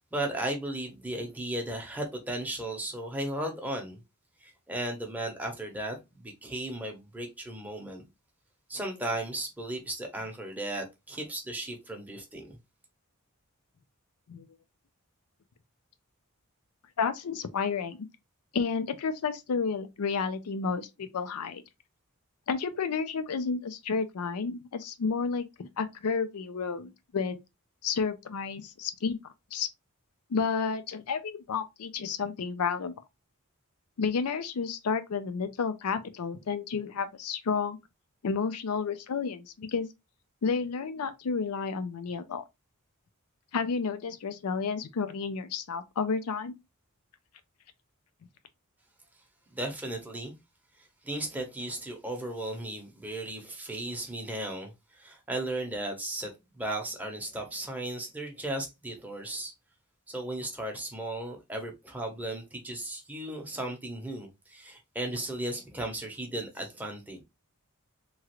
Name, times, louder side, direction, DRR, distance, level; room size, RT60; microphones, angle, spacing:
voice 1, 0.1-4.0 4.4-8.0 8.7-12.6 49.5-50.4 51.0-59.5 60.1-67.2, right 1 dB, 5° right, 0.7 m, -36 dB
voice 2, 17.0-18.1 18.5-21.6 22.5-27.4 27.8-29.2 29.5-29.7 30.3-32.9 34.0-37.8 38.2-39.9 40.4-42.4 43.5-46.5, left 5 dB, 90° left, 0.5 m, -31 dB
3.0 x 2.4 x 2.9 m
head